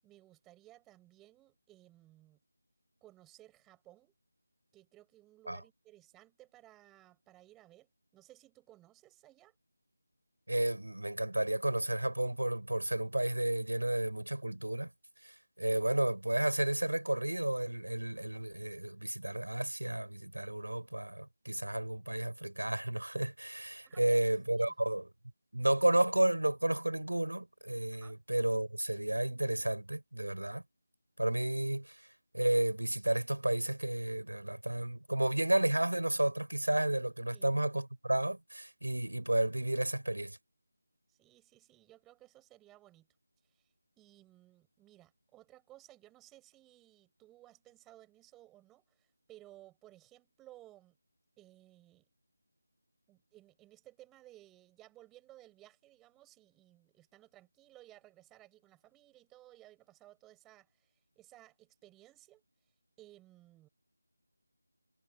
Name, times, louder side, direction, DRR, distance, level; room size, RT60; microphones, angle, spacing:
voice 1, 0.0-2.4 3.0-4.1 4.7-9.5 23.9-24.3 24.6-24.7 27.9-28.2 37.3-37.4 41.1-43.1 43.5-43.6 44.0-51.0 51.4-52.1 53.1-62.4 63.0-63.7, right 15 dB, 10° right, 7.5 m, -59 dB
voice 2, 10.5-14.9 15.2-25.1 25.5-30.6 31.2-32.1 32.3-40.4, right 1 dB, 80° right, 6.4 m, -32 dB
figure-of-eight pair, 160°, 0 cm